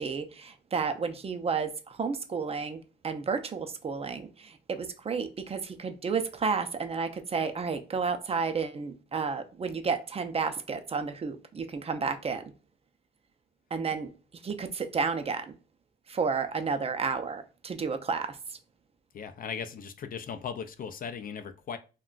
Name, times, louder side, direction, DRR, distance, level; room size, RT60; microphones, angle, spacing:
voice 1, 0.0-12.4 13.7-14.1 14.4-15.6 16.1-18.6, right 5 dB, 30° right, 0.4 m, -31 dB
voice 2, 19.1-21.8, left 6 dB, 45° left, 0.4 m, -38 dB
2.3 x 2.2 x 3.7 m
cardioid pair, 90°, 20 cm